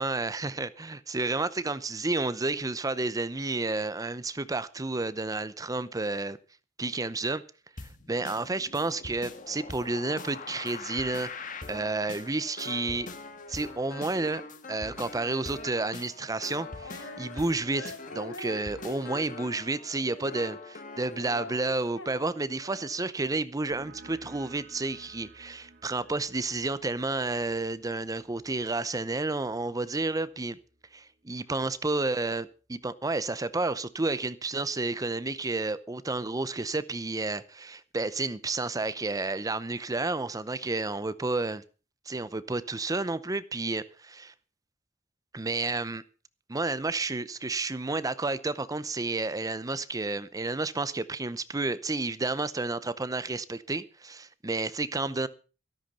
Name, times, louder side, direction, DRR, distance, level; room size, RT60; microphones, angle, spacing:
voice 1, 0.0-6.4 6.8-7.4 7.8-13.1 13.5-14.4 14.7-30.6 30.9-41.6 42.1-44.3 45.3-46.0 46.5-55.3, right 3 dB, 20° right, 0.6 m, -31 dB
sound 1, 7.8-21.6, left 3 dB, 45° left, 1.7 m, -43 dB
Female singing, 16.8-23.2, left 1 dB, 85° left, 5.0 m, -45 dB
sound 2, 23.7-31.0, right 2 dB, 60° right, 3.0 m, -54 dB
13.5 x 13.0 x 5.4 m
head